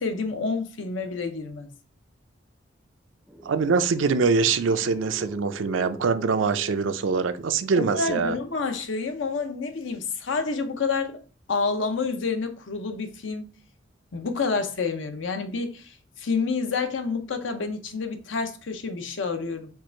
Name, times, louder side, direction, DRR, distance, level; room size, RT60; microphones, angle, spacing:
voice 1, 0.0-1.7 7.8-11.2 11.5-13.5 14.1-19.7, left 4 dB, 85° left, 0.7 m, -28 dB
sound 1, 3.3-8.4, right 1 dB, ahead, 0.4 m, -44 dB
voice 2, 3.5-8.3, right 5 dB, 85° right, 0.4 m, -23 dB
4.6 x 2.5 x 4.4 m
head